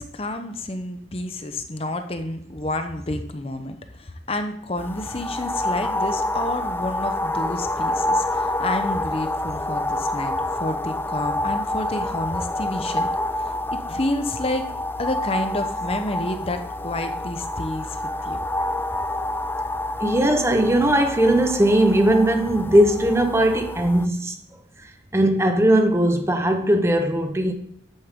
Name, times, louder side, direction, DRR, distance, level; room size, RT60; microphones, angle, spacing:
voice 1, 0.0-13.1 13.4-14.6 15.0-18.4, left 1 dB, 35° left, 0.9 m, -29 dB
sound 1, 4.8-24.1, left 1 dB, 10° left, 0.3 m, -28 dB
voice 2, 20.0-24.4 25.1-27.5, right 1 dB, 15° right, 0.9 m, -19 dB
13.0 x 8.6 x 3.7 m
head